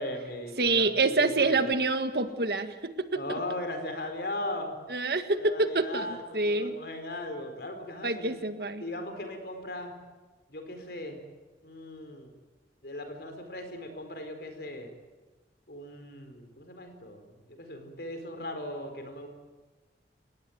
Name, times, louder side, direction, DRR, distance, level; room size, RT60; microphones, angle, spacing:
voice 1, 0.0-1.6 3.1-4.8 5.4-8.3 8.8-9.9 10.5-11.2 11.6-12.3 12.8-14.9 15.7-19.3, left 1 dB, 60° left, 6 dB, 4.7 m, -38 dB
voice 2, 0.6-3.2 4.9-6.7 8.0-8.8, right 3 dB, 60° right, 9 dB, 1.7 m, -27 dB
29.0 x 18.0 x 9.4 m, 1.3 s
head